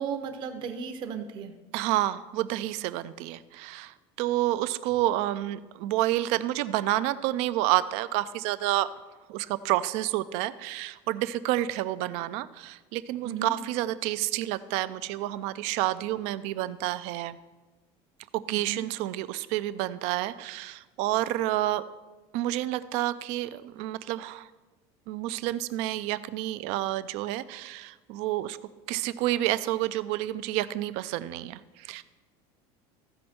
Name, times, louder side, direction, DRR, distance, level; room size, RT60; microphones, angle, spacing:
voice 1, 0.0-1.5 13.2-13.5 18.5-18.8, right 6 dB, 35° right, 7 dB, 0.8 m, -35 dB
voice 2, 1.7-8.9 9.3-17.4 18.3-21.8 22.3-24.5 25.1-28.6 28.9-32.0, right 15 dB, 50° right, 15 dB, 0.4 m, -29 dB
15.0 x 5.4 x 4.3 m, 1.2 s
cardioid pair, 180°, 14 cm